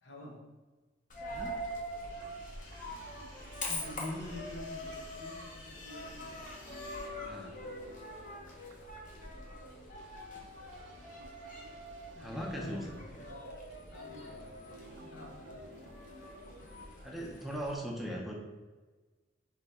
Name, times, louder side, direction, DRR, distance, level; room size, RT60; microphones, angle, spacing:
voice 1, 0.0-0.5 2.3-2.4 3.7-6.6 9.3-9.9 12.1-13.5 13.9-15.7, left 1 dB, 70° left, 0 dB, 0.9 m, -47 dB
Coin (dropping), 1.1-17.7, left 1 dB, 45° left, 0.9 m, -44 dB
sound 1, 1.7-17.7, right 1 dB, 85° right, 0.5 m, -55 dB
sound 2, 2.1-7.1, left 2 dB, 90° left, 1.4 m, -54 dB
voice 2, 12.2-12.8 17.0-18.3, equal, ahead, -2 dB, 0.5 m, -39 dB
3.5 x 3.3 x 4.1 m, 1.3 s
head